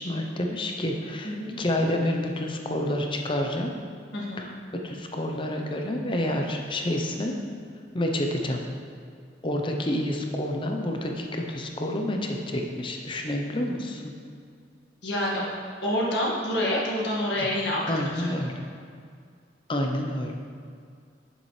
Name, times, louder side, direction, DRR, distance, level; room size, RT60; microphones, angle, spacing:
voice 1, 0.0-3.7 4.4-4.5 4.8-7.3 7.9-8.6 9.4-14.1 17.4-17.5 17.9-18.5 19.7-20.4, left 1 dB, 25° left, 2 dB, 0.7 m, -28 dB
voice 2, 4.1-4.5 15.0-15.4 15.8-18.3, left 1 dB, 70° left, -5 dB, 1.9 m, -27 dB
9.4 x 7.3 x 3.3 m, 2.2 s
head